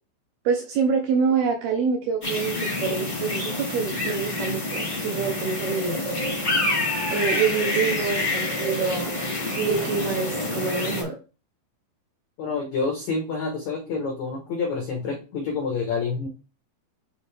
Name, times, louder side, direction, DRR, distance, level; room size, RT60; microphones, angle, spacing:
voice 1, 0.5-6.0 7.1-9.2 9.6-11.2, right 5 dB, 80° right, 2 dB, 2.3 m, -26 dB
sound 1, 2.2-11.0, left 2 dB, 50° left, 0.5 m, -27 dB
voice 2, 12.4-16.3, left 4 dB, 90° left, 1 dB, 1.6 m, -28 dB
9.1 x 3.3 x 3.4 m, 0.32 s
omnidirectional pair, 5.3 m